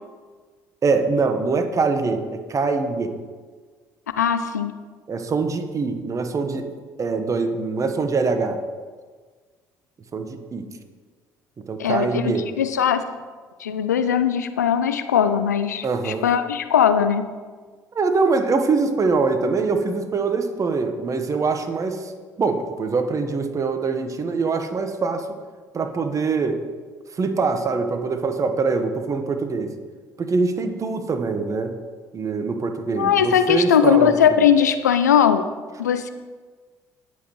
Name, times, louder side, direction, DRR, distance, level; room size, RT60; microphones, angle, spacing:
voice 1, 0.8-2.2 2.5-3.1 5.1-6.7 7.0-8.6 10.1-10.7 11.7-12.5 15.8-16.3 17.9-22.1 22.4-25.4 25.7-26.6 27.2-29.7 30.2-31.7 32.1-34.1, right 4 dB, 40° right, 7 dB, 1.4 m, -23 dB
voice 2, 4.2-4.7 11.8-13.0 13.6-17.3 33.0-35.5 35.8-36.1, left 8 dB, 90° left, 10 dB, 0.5 m, -19 dB
18.0 x 7.7 x 3.2 m, 1.5 s
hypercardioid pair, 55°, 9 cm